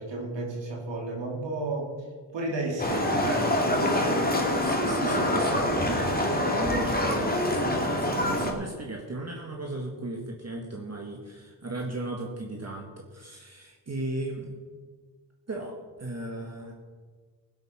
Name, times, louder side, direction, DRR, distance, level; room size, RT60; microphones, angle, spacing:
voice 1, 0.0-1.9 2.3-4.2 5.1-5.5, right 2 dB, 75° right, -1 dB, 2.9 m, -33 dB
Livestock farm animals working animals, 2.8-8.5, left 1 dB, 20° left, 2.4 m, -25 dB
voice 2, 4.6-14.5 15.5-16.7, right 2 dB, 35° right, 0 dB, 1.9 m, -36 dB
15.5 x 8.2 x 5.8 m, 1.5 s
cardioid pair, 75°, 44 cm